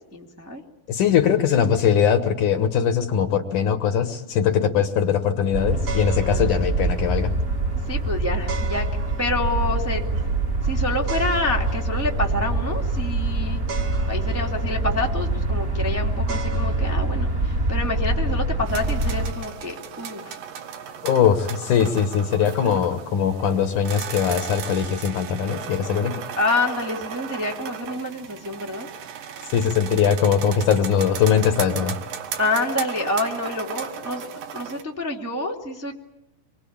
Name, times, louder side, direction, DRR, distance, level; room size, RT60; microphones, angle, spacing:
voice 1, 0.1-0.6 6.3-6.6 7.9-8.8 9.2-10.0 10.6-13.6 14.1-20.4 26.4-28.9 32.4-34.3 34.5-35.9, left 2 dB, 5° right, 1 dB, 1.2 m, -27 dB
voice 2, 0.9-7.3 21.0-26.2 29.5-32.0, left 8 dB, 65° left, 8 dB, 2.5 m, -21 dB
sound 1, 5.5-19.3, right 2 dB, 25° right, 2.2 m, -25 dB
sound 2, 5.8-16.9, right 3 dB, 50° right, 3.1 m, -39 dB
sound 3, 18.7-34.8, right 8 dB, 75° right, 3.2 m, -36 dB
26.0 x 23.0 x 8.7 m, 0.90 s
omnidirectional pair, 4.2 m